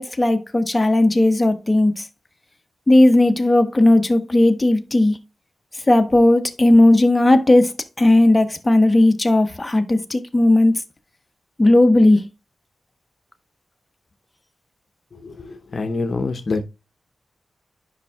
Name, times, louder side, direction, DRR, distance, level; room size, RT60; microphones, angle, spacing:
voice 1, 0.0-2.0 2.9-5.2 5.9-10.7 11.6-12.2, left 1 dB, 25° left, 1.0 m, -15 dB
voice 2, 15.2-16.6, left 3 dB, 60° left, 0.8 m, -26 dB
9.7 x 5.5 x 2.4 m
cardioid pair, 55°, 0 cm